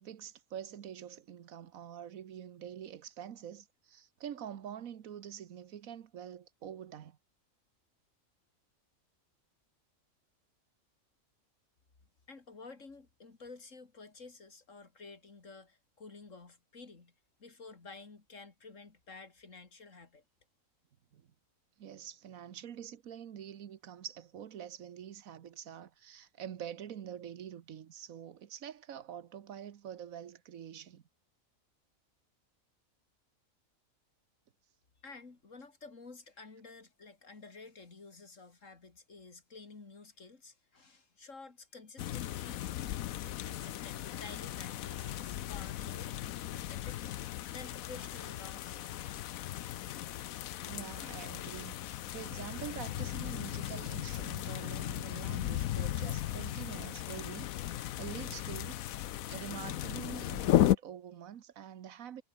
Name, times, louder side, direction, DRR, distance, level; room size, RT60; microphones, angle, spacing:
voice 1, 0.0-7.2 21.1-21.3 21.8-31.0 50.7-58.8 59.3-62.2, right 9 dB, 90° right, 1.4 m, -46 dB
voice 2, 12.3-17.1 17.4-20.2 35.0-42.6 43.4-49.3, left 4 dB, 65° left, 3.1 m, -52 dB
sound 1, 42.0-60.8, left 13 dB, 85° left, 1.1 m, -36 dB
omnidirectional pair, 1.4 m